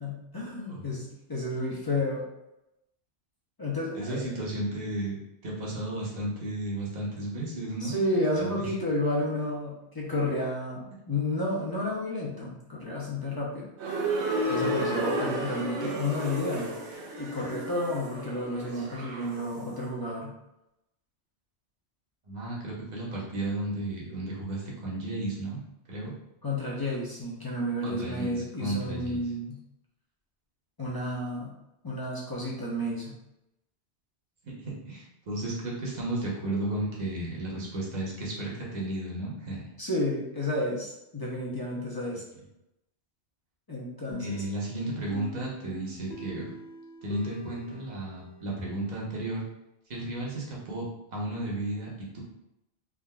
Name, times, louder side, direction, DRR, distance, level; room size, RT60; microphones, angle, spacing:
voice 1, 0.0-2.3 3.6-4.2 7.8-13.7 14.5-16.7 17.2-20.3 26.4-29.6 30.8-31.5 31.8-33.1 39.8-42.2 43.7-44.4, left 1 dB, 30° left, -5 dB, 0.5 m, -31 dB
voice 2, 3.9-8.0 8.3-8.7 22.3-25.6 25.9-26.1 27.8-29.2 34.4-39.6 44.2-46.5 47.0-49.4 49.9-52.2, right 2 dB, 45° right, -4 dB, 0.9 m, -34 dB
sound 1, 13.8-19.7, right 1 dB, 85° right, 0.9 m, -32 dB
sound 2, 44.1-48.8, left 1 dB, 70° left, 0.8 m, -43 dB
3.5 x 2.5 x 2.2 m, 0.88 s
omnidirectional pair, 1.1 m